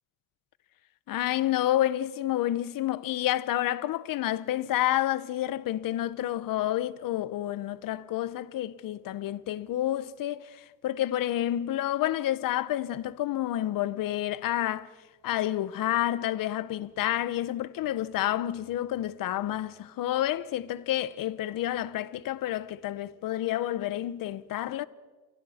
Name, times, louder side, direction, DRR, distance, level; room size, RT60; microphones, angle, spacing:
voice 1, 1.1-14.9 15.2-24.9, left 13 dB, 60° left, 0.9 m, -29 dB
29.5 x 27.0 x 4.3 m
cardioid pair, 125°, 37 cm